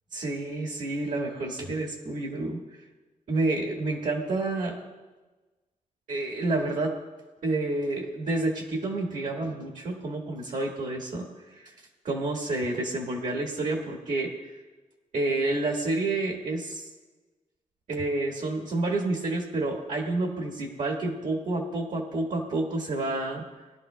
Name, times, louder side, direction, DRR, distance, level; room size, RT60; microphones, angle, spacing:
voice 1, 0.1-2.6 3.3-4.8 6.1-7.0 7.4-11.2 11.5-11.7 12.0-14.5 15.1-16.9 17.9-23.4, right 2 dB, 65° right, 0 dB, 1.6 m, -29 dB
21.0 x 11.5 x 2.2 m, 1.2 s
wide cardioid pair, 140°, 14 cm